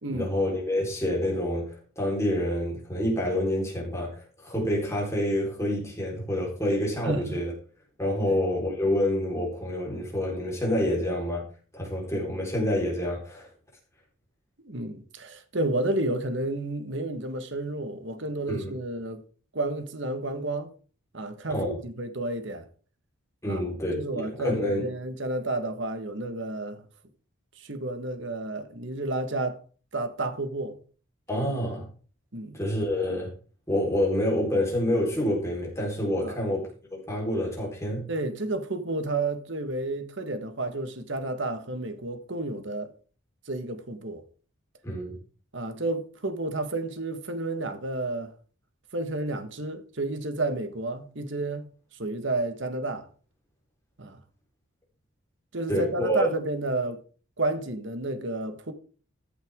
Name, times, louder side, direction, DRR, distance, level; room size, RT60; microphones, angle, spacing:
voice 1, 0.1-7.5 8.0-11.4 11.7-13.5 18.5-18.8 21.5-21.8 23.4-24.9 31.3-31.9 32.5-33.3 33.7-38.1 44.8-45.2 55.7-56.3, left 1 dB, 15° left, 4.2 m, -28 dB
voice 2, 7.0-7.4 8.2-8.4 14.6-19.2 19.5-20.7 21.1-22.6 23.4-23.6 23.9-26.8 27.6-29.6 29.9-30.8 32.3-32.6 36.2-36.4 38.1-42.9 43.5-44.2 45.5-48.3 48.9-51.6 52.0-53.1 54.0-54.2 55.5-57.0 57.4-58.7, right 2 dB, 60° right, 1.5 m, -31 dB
14.5 x 8.1 x 3.7 m
head